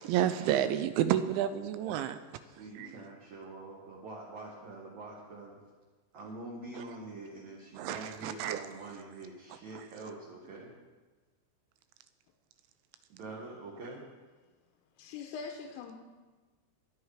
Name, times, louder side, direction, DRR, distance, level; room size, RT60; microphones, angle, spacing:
voice 1, 0.0-2.2 2.8-2.9 7.8-8.6, right 11 dB, 85° right, 11 dB, 2.8 m, -30 dB
voice 2, 2.4-5.6 6.1-10.7 13.1-14.0, right 2 dB, 55° right, -4 dB, 2.1 m, -45 dB
voice 3, 15.0-15.9, left 5 dB, 90° left, 1 dB, 3.6 m, -42 dB
23.0 x 8.0 x 5.0 m, 1.3 s
omnidirectional pair, 5.7 m